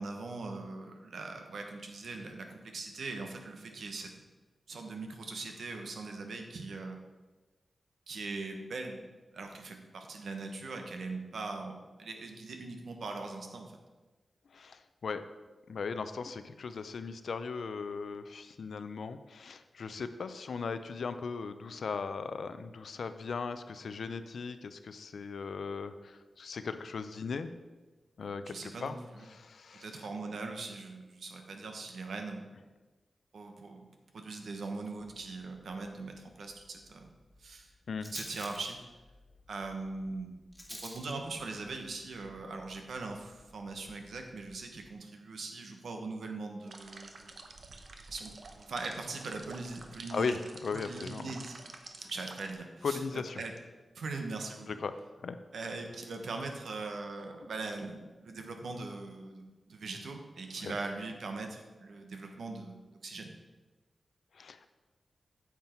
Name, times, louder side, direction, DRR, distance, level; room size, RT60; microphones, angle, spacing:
voice 1, 0.0-4.1 4.7-7.0 8.1-9.0 9.3-13.8 28.5-29.3 29.8-32.5 33.3-33.8 34.1-37.1 37.4-37.7 38.1-38.8 39.5-40.3 40.7-47.1 48.1-48.3 48.7-50.4 50.7-51.6 52.0-53.5 53.9-54.8 55.5-63.3, right 3 dB, 85° right, 4 dB, 1.2 m, -41 dB
voice 2, 14.5-15.2 15.7-27.5 28.2-29.0 29.3-29.9 37.9-38.1 50.1-50.4 50.6-51.4 52.8-53.4 54.7-54.9 55.2-55.4 60.6-60.7 64.3-64.7, left 5 dB, 75° left, 10 dB, 0.6 m, -38 dB
Rattle, 35.1-44.9, equal, 5° right, 1.8 m, -52 dB
sound 1, 46.6-52.5, right 3 dB, 60° right, 0.9 m, -49 dB
9.3 x 7.4 x 4.5 m, 1.2 s
wide cardioid pair, 115°, 0 cm